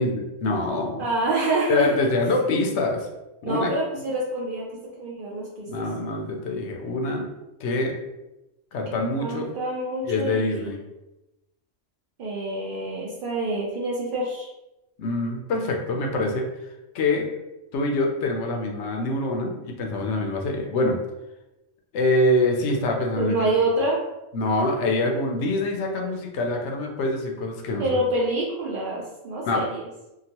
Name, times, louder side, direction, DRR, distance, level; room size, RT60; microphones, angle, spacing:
voice 1, 0.0-1.0 1.7-3.1 3.4-3.7 5.7-7.3 7.6-8.0 8.7-9.5 10.1-10.8 15.0-16.5 16.9-17.3 17.7-21.0 21.9-23.5 24.3-28.0 29.4-29.6, left 2 dB, 75° left, 2 dB, 0.8 m, -25 dB
voice 2, 1.0-2.1 3.4-5.9 8.9-10.7 12.2-14.5 23.2-24.0 27.8-29.9, right 2 dB, 60° right, -3 dB, 0.6 m, -27 dB
2.8 x 2.2 x 2.8 m, 0.97 s
omnidirectional pair, 1.2 m